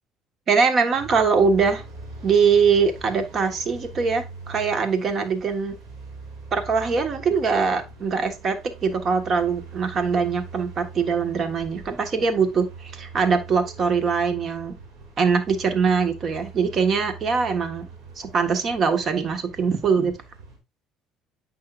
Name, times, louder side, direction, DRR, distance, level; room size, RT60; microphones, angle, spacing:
voice 1, 0.5-1.8 2.2-5.8 6.5-14.8 15.2-17.9 18.2-20.2, right 5 dB, 50° right, 1.4 m, -22 dB
sound 1, 0.9-20.6, right 4 dB, 65° right, 2.5 m, -42 dB
8.7 x 5.5 x 2.5 m
supercardioid pair, 80°, 0 cm